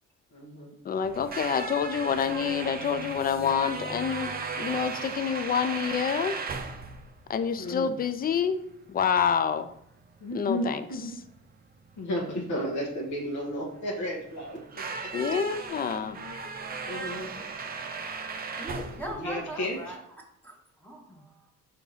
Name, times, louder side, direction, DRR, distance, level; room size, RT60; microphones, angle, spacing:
voice 1, 0.3-0.7 7.6-7.9 10.2-11.1 12.0-15.4 16.0-16.3 16.7-17.4 19.1-19.9, equal, 75° left, -2 dB, 1.2 m, -34 dB
voice 2, 0.8-4.3 4.6-6.4 7.3-8.6 8.9-9.7 10.3-10.8 15.1-16.2, left 7 dB, 30° left, 11 dB, 0.4 m, -27 dB
sound 1, 1.0-20.0, right 4 dB, 30° right, 0.5 m, -37 dB
voice 3, 18.6-20.0 20.4-21.5, right 1 dB, 5° left, -1 dB, 1.0 m, -40 dB
4.5 x 2.9 x 3.9 m, 0.72 s
cardioid pair, 90°, 30 cm